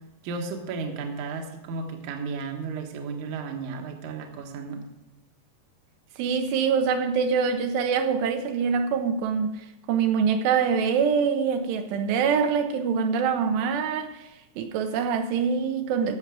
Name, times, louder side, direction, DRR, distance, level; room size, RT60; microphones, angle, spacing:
voice 1, 0.2-4.9, right 4 dB, 65° right, 2.0 m, -34 dB
voice 2, 6.2-14.3 14.6-16.2, right 6 dB, 80° right, 2.8 m, -24 dB
14.0 x 7.0 x 4.9 m
omnidirectional pair, 5.1 m